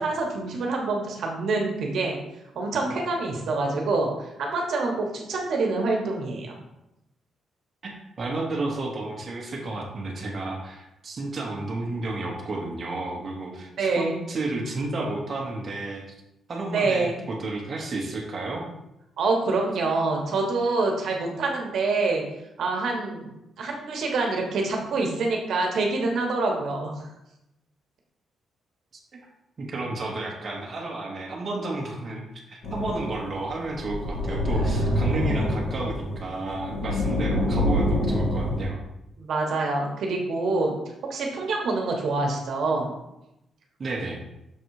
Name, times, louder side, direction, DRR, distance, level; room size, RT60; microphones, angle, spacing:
voice 1, 0.0-2.2 2.5-6.6 13.8-14.2 16.7-17.3 19.2-22.2 22.6-23.3 23.6-26.9 34.5-34.6 39.2-40.7 41.1-42.9, right 3 dB, 60° right, 1 dB, 1.2 m, -26 dB
voice 2, 7.8-16.0 16.5-18.6 29.1-29.2 29.6-38.8 43.8-44.2, right 2 dB, 30° right, -3 dB, 1.1 m, -32 dB
sound 1, 32.6-38.7, left 1 dB, 60° left, 1.7 m, -26 dB
6.5 x 3.9 x 4.7 m, 0.89 s
wide cardioid pair, 170°, 0 cm